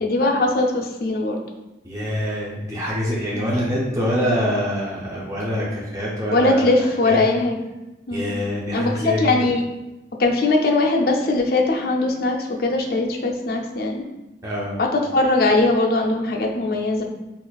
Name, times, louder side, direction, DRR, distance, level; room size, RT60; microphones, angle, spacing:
voice 1, 0.0-1.4 3.3-3.5 6.3-7.6 8.1-8.3 8.7-9.6 10.2-14.0 14.8-17.0, left 2 dB, 55° left, 1 dB, 0.4 m, -20 dB
voice 2, 1.8-6.6 7.0-7.2 8.1-9.3 14.4-14.8, equal, 15° right, -5 dB, 0.5 m, -25 dB
4.2 x 2.5 x 2.2 m, 1.0 s
head